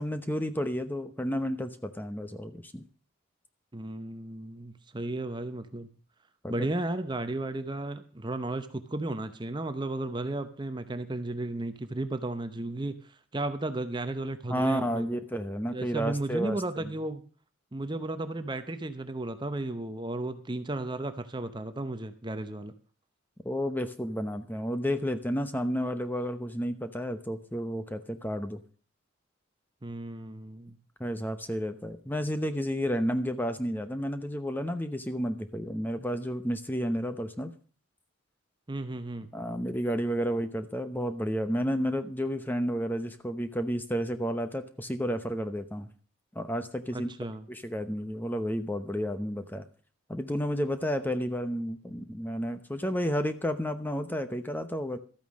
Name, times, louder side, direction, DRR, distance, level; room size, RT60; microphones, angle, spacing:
voice 1, 0.0-2.8 6.4-6.7 14.5-16.9 23.4-28.6 31.0-37.5 39.3-45.9 46.3-47.1 47.5-49.6 50.1-55.0, equal, 10° left, 10 dB, 0.8 m, -31 dB
voice 2, 3.7-6.0 6.5-15.2 15.7-17.2 17.7-22.7 29.8-30.8 38.7-39.3 46.9-47.4, right 2 dB, 20° right, 10 dB, 0.7 m, -34 dB
13.0 x 9.1 x 6.3 m, 0.39 s
head